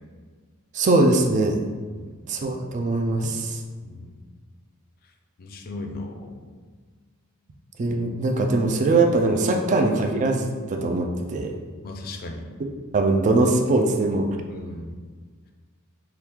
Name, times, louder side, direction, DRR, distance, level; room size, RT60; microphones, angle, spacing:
voice 1, 0.7-1.6 2.3-3.6 7.8-11.5 12.9-14.3, right 2 dB, 35° right, 3 dB, 0.3 m, -21 dB
voice 2, 1.9-2.2 3.8-4.1 5.4-6.4 11.8-12.4 14.5-15.0, left 2 dB, 45° left, 3 dB, 0.4 m, -37 dB
3.0 x 2.3 x 3.5 m, 1.5 s
head